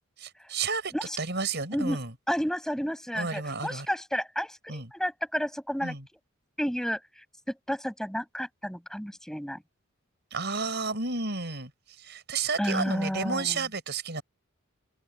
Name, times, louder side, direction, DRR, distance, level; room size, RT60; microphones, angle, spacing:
voice 1, 0.2-2.1 3.1-3.9 4.7-4.9 5.8-6.0 10.3-11.7 12.0-14.2, right 4 dB, 50° right, 6.4 m, -31 dB
voice 2, 2.3-5.9 6.6-7.0 7.7-9.6 12.6-13.6, equal, ahead, 5.9 m, -31 dB
open air
head